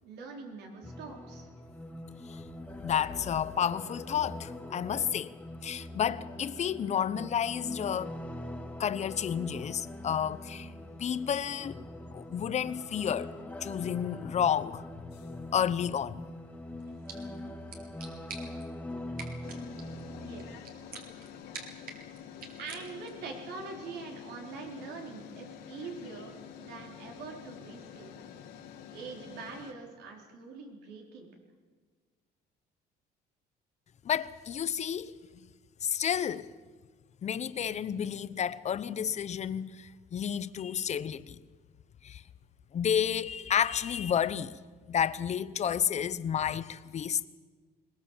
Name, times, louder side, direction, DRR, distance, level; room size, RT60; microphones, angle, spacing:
voice 1, 0.0-1.5 20.2-20.6 22.6-28.2 28.9-31.3, right 4 dB, 80° right, 4.4 m, -44 dB
sound 1, 0.8-20.6, left 1 dB, 10° left, 1.6 m, -43 dB
voice 2, 2.8-5.3 5.6-8.2 8.8-10.7 11.0-11.8 12.1-13.3 13.6-14.8 15.5-16.2 34.0-35.1 35.8-36.5 37.2-41.4 42.0-42.2 42.7-44.6 44.9-47.3, left 8 dB, 40° left, 0.9 m, -31 dB
sound 2, 15.1-15.5 17.2-17.3 19.4-29.7, left 9 dB, 85° left, 2.7 m, -48 dB
sound 3, 16.8-23.3, right 4 dB, 60° right, 3.6 m, -49 dB
21.5 x 20.0 x 7.4 m
cardioid pair, 110°, 17 cm